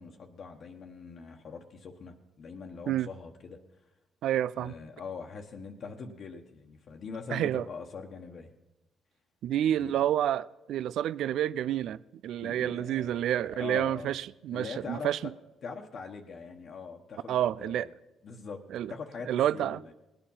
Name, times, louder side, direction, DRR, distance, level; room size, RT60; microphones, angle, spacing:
voice 1, 0.0-3.6 4.6-8.5 9.7-9.9 12.4-14.1 14.5-15.2 15.6-17.9 18.2-19.9, left 5 dB, 55° left, 1.2 m, -42 dB
voice 2, 4.2-4.7 7.3-7.6 9.4-15.2 17.3-17.9 18.7-18.9 19.3-19.8, right 11 dB, 70° right, 0.4 m, -29 dB
18.5 x 8.9 x 5.6 m
supercardioid pair, 65°, 0 cm